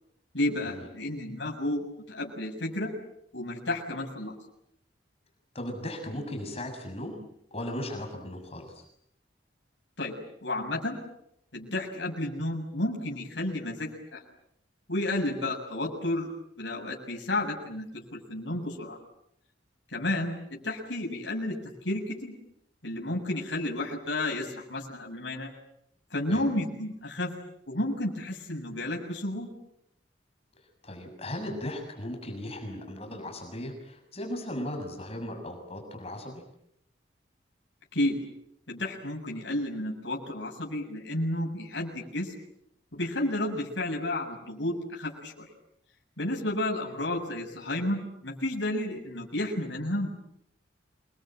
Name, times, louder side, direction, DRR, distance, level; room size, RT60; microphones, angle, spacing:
voice 1, 0.3-2.9 3.3-4.3 10.0-10.1 10.4-11.0 11.5-14.2 14.9-16.3 16.6-19.0 19.9-21.6 21.8-22.3 22.8-25.5 26.1-27.3 27.7-29.5 37.9-38.2 38.7-42.3 42.9-45.5 46.2-50.1, left 1 dB, 75° left, 0 dB, 6.7 m, -31 dB
voice 2, 5.5-7.2 7.5-8.8 26.3-26.5 30.8-36.4, left 1 dB, 35° left, 3 dB, 6.7 m, -37 dB
28.0 x 22.5 x 9.0 m, 0.74 s
head